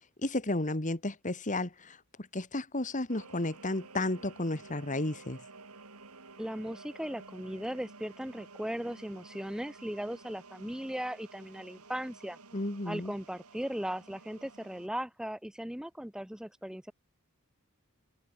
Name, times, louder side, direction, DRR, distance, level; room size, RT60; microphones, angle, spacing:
voice 1, 0.2-2.0 2.3-5.4 12.5-13.1, left 2 dB, 35° left, 1.9 m, -33 dB
sound 1, 3.1-14.9, right 3 dB, 85° right, 3.4 m, -52 dB
voice 2, 6.4-12.4 12.9-16.9, equal, 5° right, 0.6 m, -38 dB
head